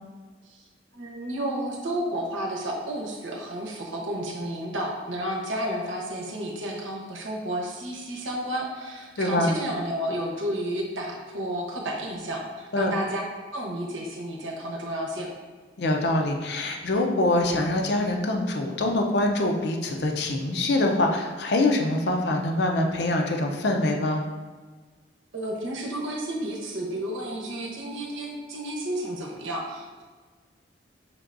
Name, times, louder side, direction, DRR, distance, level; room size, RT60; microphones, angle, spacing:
voice 1, 0.9-13.2 13.5-15.3 25.3-30.1, right 1 dB, 80° right, -1 dB, 0.9 m, -31 dB
voice 2, 9.2-9.5 12.7-12.9 15.8-24.2, left 2 dB, 60° left, 3 dB, 0.5 m, -24 dB
5.9 x 3.4 x 2.5 m, 1.4 s
head